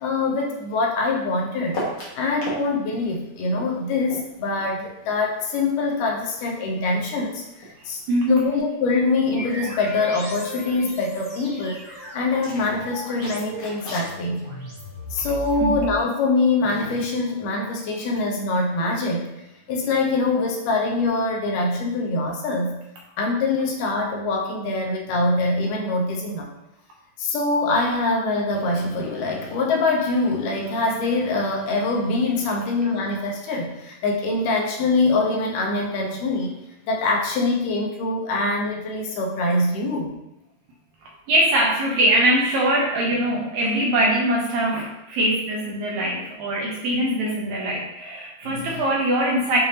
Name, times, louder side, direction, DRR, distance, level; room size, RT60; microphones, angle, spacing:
voice 1, 0.0-1.8 2.2-7.4 7.9-8.0 8.3-11.8 12.1-14.4 15.1-19.3 19.7-22.7 23.2-26.5 27.2-36.5 36.9-40.1 48.5-48.7, left 3 dB, 80° left, 0 dB, 2.3 m, -24 dB
sound 1, 1.7-2.6 2.9-5.8 6.1-7.8 8.1-8.6 9.0-9.1 9.2-9.5 9.8-10.8 12.3-14.1, equal, 55° left, 1.6 m, -36 dB
voice 2, 8.1-8.4 15.6-15.8 41.3-49.6, right 1 dB, 80° right, -1 dB, 1.7 m, -22 dB
sound 2, 9.3-16.5, equal, 45° right, 1.0 m, -37 dB
6.7 x 2.6 x 2.8 m, 0.86 s
omnidirectional pair, 3.7 m